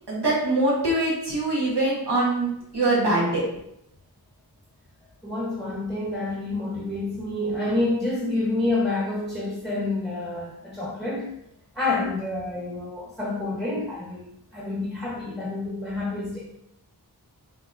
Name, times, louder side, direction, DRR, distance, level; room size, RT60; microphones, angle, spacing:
voice 1, 0.1-3.4, right 2 dB, 85° right, -6 dB, 1.3 m, -23 dB
voice 2, 5.2-11.4 11.7-16.5, left 2 dB, ahead, -5 dB, 1.0 m, -28 dB
4.4 x 3.0 x 2.6 m, 0.78 s
wide cardioid pair, 40°, 39 cm